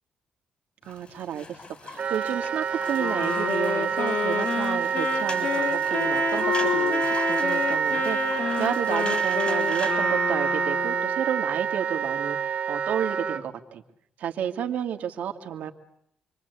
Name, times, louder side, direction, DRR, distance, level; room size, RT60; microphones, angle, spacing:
sound 1, 0.8-9.9, left 4 dB, 40° left, 6.3 m, -41 dB
voice 1, 0.8-13.8 14.2-15.7, right 9 dB, 75° right, 5 dB, 2.4 m, -31 dB
Wind instrument woodwind instrument, 2.0-13.4, right 7 dB, 50° right, 1.2 m, -27 dB
Wind instrument woodwind instrument 2, 3.0-11.2, left 7 dB, 60° left, 2.0 m, -29 dB
28.0 x 23.0 x 8.3 m, 0.73 s
cardioid pair, 110°, 3 cm